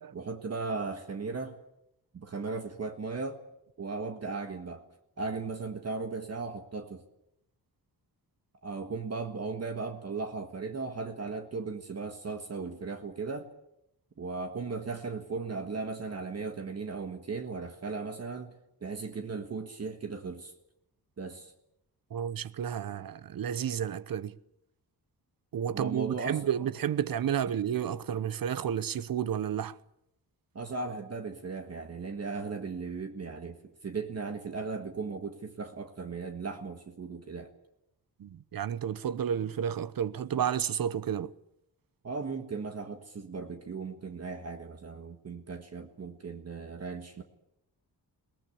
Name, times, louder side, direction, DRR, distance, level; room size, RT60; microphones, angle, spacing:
voice 1, 0.1-1.6 2.1-3.4 3.8-4.9 5.2-7.0 8.6-13.5 14.2-18.5 18.8-20.5 21.2-21.5 25.7-26.5 30.5-37.5 42.0-47.2, right 4 dB, 40° right, 1.6 m, -37 dB
voice 2, 22.1-24.3 25.5-29.7 38.2-41.3, right 9 dB, 60° right, 0.9 m, -31 dB
21.5 x 19.0 x 8.5 m
wide cardioid pair, 160°, 39 cm